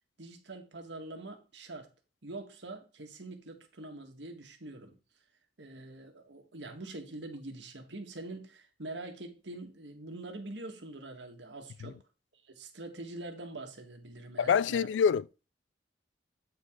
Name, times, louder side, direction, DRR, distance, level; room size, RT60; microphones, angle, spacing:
voice 1, 0.2-1.9 2.2-4.9 5.6-12.0 12.3-14.9, right 2 dB, 80° right, 1.6 m, -44 dB
voice 2, 14.4-15.5, left 7 dB, 90° left, 0.3 m, -27 dB
8.4 x 4.8 x 3.7 m
head